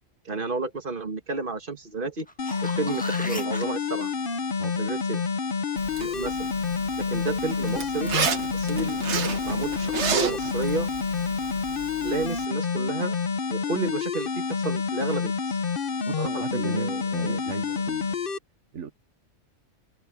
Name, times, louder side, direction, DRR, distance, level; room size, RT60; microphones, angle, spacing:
voice 1, 0.3-2.3 2.6-4.1 4.8-5.3 6.0-6.5 7.0-8.2 8.5-9.0 9.5-10.9 12.0-13.2 13.5-15.6 16.2-17.4, right 3 dB, 50° right, 2.0 m, -31 dB
sound 1, 2.2-3.6 8.4-8.5, equal, 5° left, 1.6 m, -37 dB
sound 2, 2.4-18.4, left 5 dB, 50° left, 1.2 m, -28 dB
Zipper (clothing), 5.8-12.5, right 6 dB, 70° right, 1.5 m, -32 dB
voice 2, 15.8-18.3 18.7-18.9, right 7 dB, 90° right, 1.4 m, -37 dB
omnidirectional pair, 1.2 m